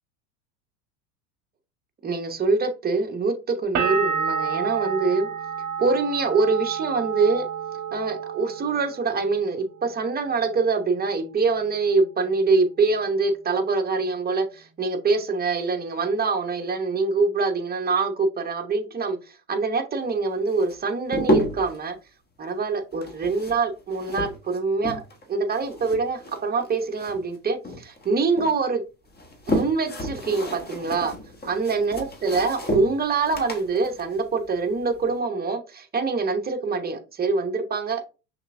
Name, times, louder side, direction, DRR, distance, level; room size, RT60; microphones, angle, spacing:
voice 1, 2.0-5.3 5.8-7.5 7.9-19.2 19.5-22.0 22.4-25.0 25.3-28.8 29.5-31.1 31.5-38.0, right 4 dB, 20° right, 0.9 m, -24 dB
sound 1, 3.8-9.4 9.7-10.4, right 6 dB, 35° right, 1.4 m, -29 dB
sound 2, 20.5-21.8 22.9-25.2 25.5-27.4 27.6-28.5 29.0-35.1, equal, 20° left, 1.3 m, -31 dB
5.7 x 3.4 x 2.6 m
hypercardioid pair, 90°, 48 cm